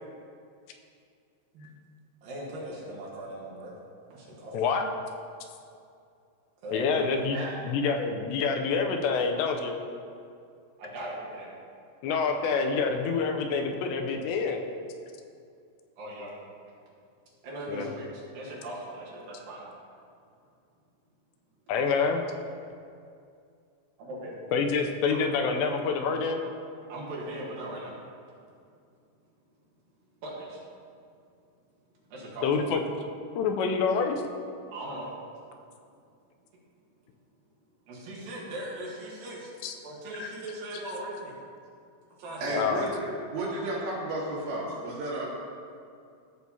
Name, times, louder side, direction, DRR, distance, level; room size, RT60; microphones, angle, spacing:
voice 1, 2.2-3.7 4.1-4.6 6.6-7.6 10.8-11.5 16.0-16.3 17.4-19.7 24.0-24.5 25.1-25.2 26.9-27.9 30.2-30.6 32.1-32.5 34.7-35.1 37.9-39.5 39.8-41.4 42.2-42.6, right 1 dB, 65° right, -5 dB, 2.8 m, -39 dB
voice 2, 4.5-4.8 6.7-7.4 7.6-9.8 12.0-14.6 17.7-17.9 21.7-22.3 24.5-26.4 32.4-32.8 33.4-34.2 39.6-39.7 40.2-40.3 42.5-42.8, left 5 dB, 90° left, 4 dB, 2.8 m, -27 dB
voice 3, 42.4-45.3, right 1 dB, 80° right, -6 dB, 4.1 m, -32 dB
14.0 x 6.3 x 2.8 m, 2.4 s
omnidirectional pair, 5.0 m